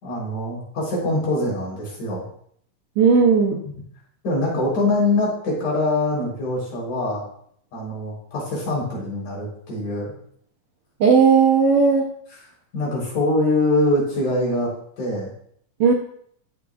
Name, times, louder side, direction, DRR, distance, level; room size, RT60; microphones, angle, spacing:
voice 1, 0.0-2.2 3.6-3.7 4.2-7.2 7.7-10.1 12.7-14.7 15.0-15.3, left 2 dB, 80° left, -5 dB, 5.2 m, -23 dB
voice 2, 3.0-3.6 11.0-12.1 15.8-15.9, right 5 dB, 75° right, 1 dB, 1.4 m, -15 dB
14.5 x 6.4 x 2.4 m, 0.65 s
omnidirectional pair, 3.5 m